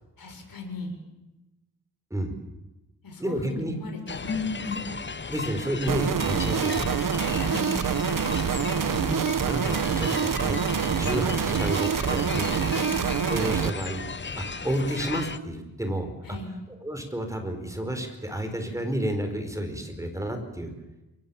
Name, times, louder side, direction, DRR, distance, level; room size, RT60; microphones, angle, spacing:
voice 1, 0.2-1.0 3.0-4.8 7.3-7.8 12.7-13.0 16.2-16.5, left 3 dB, 65° left, 4 dB, 6.8 m, -35 dB
voice 2, 3.2-3.7 5.3-7.2 8.8-10.6 10.9-12.5 13.3-14.0 14.4-16.1 16.8-20.7, right 1 dB, 10° right, 6 dB, 4.8 m, -31 dB
sound 1, 4.1-15.4, left 4 dB, 30° left, 1.0 m, -35 dB
sound 2, 5.9-13.7, right 7 dB, 60° right, 1.1 m, -26 dB
29.0 x 22.5 x 7.2 m, 1.0 s
wide cardioid pair, 140°, 37 cm